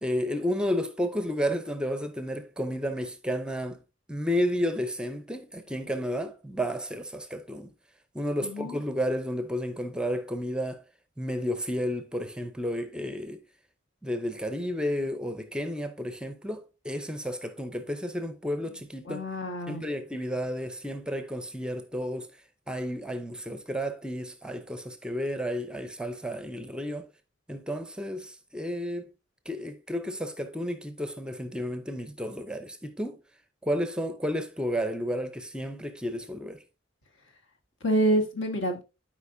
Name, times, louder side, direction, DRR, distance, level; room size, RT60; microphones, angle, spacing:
voice 1, 0.0-3.8 4.1-7.7 8.1-10.8 11.2-13.4 14.0-19.2 19.7-22.3 22.7-27.1 27.5-29.1 29.5-33.2 33.6-36.6, equal, 5° right, 0.6 m, -32 dB
voice 2, 8.4-8.8 19.1-19.8 37.8-38.8, right 1 dB, 65° left, 1.5 m, -27 dB
12.0 x 5.0 x 2.6 m
head